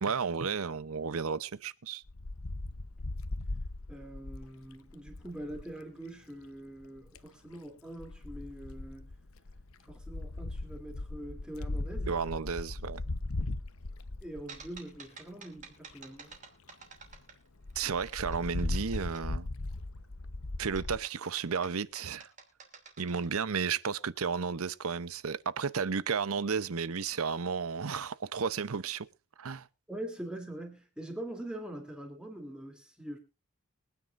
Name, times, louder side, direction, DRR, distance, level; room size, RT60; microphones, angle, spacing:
voice 1, 0.0-2.0 12.1-13.0 17.8-19.5 20.6-22.3 23.0-29.1 29.4-29.7, right 5 dB, 80° right, 0.7 m, -33 dB
Wind, 2.1-5.7 6.8-7.3 8.0-15.0 15.6-15.7 15.9-16.0 16.3-16.4 16.7-16.8 17.0-17.2 17.6-21.0, left 2 dB, 80° left, 1.0 m, -38 dB
voice 2, 3.9-9.1 9.9-12.2 14.2-16.3 29.9-33.2, right 1 dB, 5° right, 2.9 m, -43 dB
sound 1, 14.5-17.7 18.0-19.2 20.7-23.4, right 5 dB, 35° right, 2.8 m, -51 dB
23.5 x 9.6 x 2.5 m
head